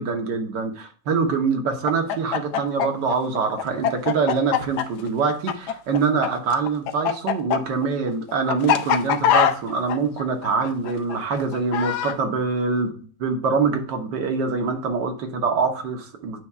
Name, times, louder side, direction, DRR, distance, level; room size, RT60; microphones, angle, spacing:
voice 1, 0.0-16.4, right 5 dB, 80° right, 4 dB, 1.6 m, -24 dB
Chicken rooster, 1.8-6.3 6.5-12.2, left 9 dB, 75° left, 1.1 m, -22 dB
8.3 x 5.4 x 2.4 m, 0.43 s
omnidirectional pair, 1.9 m